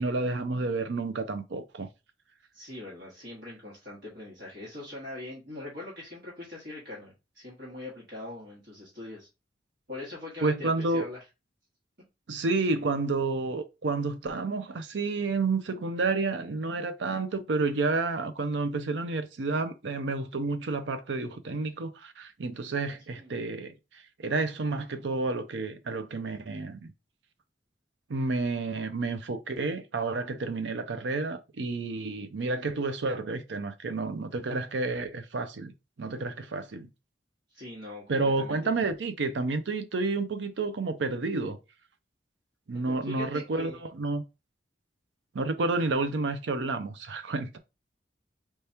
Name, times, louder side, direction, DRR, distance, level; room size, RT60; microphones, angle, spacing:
voice 1, 0.0-1.9 10.4-11.0 12.3-23.7 24.2-26.9 28.1-35.7 36.0-36.9 38.1-41.6 42.7-44.2 45.3-47.6, right 3 dB, 80° right, 0.6 m, -30 dB
voice 2, 2.5-9.3 9.9-11.2 23.1-23.4 37.5-38.7 42.9-43.8, left 2 dB, 60° right, 1.7 m, -42 dB
4.4 x 3.4 x 2.8 m
head